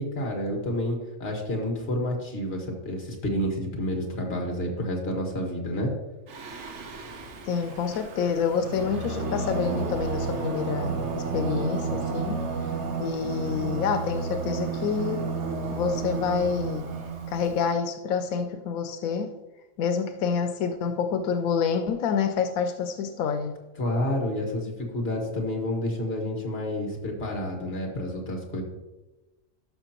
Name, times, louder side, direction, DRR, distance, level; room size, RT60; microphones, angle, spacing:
voice 1, 0.0-5.9 23.8-28.6, left 1 dB, 50° left, 1 dB, 1.9 m, -29 dB
Singing, 6.3-17.6, right 4 dB, 60° right, 1.1 m, -31 dB
voice 2, 7.5-12.4 13.0-15.4 15.7-16.9 17.3-19.3 19.8-23.6, left 6 dB, 90° left, 7 dB, 1.0 m, -28 dB
12.0 x 5.7 x 2.9 m, 1.1 s
omnidirectional pair, 1.4 m